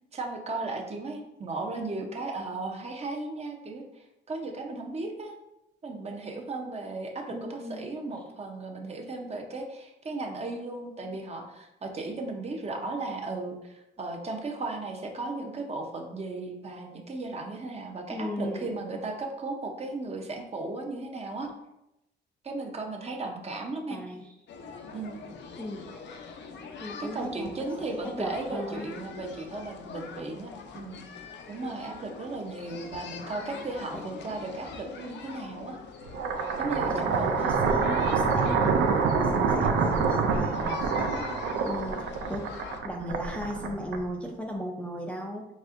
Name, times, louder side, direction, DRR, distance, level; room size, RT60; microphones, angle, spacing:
voice 1, 0.1-5.3 5.8-21.5 22.4-24.0 24.9-25.2 27.0-31.0 31.5-35.8 36.6-37.7 39.6-39.9, right 2 dB, 30° right, 2 dB, 0.7 m, -36 dB
voice 2, 7.3-7.8 18.1-18.7 23.9-24.3 25.6-25.9 26.8-28.9 33.9-34.0 36.9-38.9 39.2-41.3 41.6-42.0 42.3-42.5 42.8-45.5, equal, 5° left, 0 dB, 0.4 m, -36 dB
sound 1, 24.5-42.8, left 5 dB, 60° left, 0.5 m, -43 dB
sound 2, 36.1-44.3, right 5 dB, 85° right, 0.5 m, -26 dB
4.2 x 3.2 x 2.5 m, 0.89 s
cardioid pair, 90°, 20 cm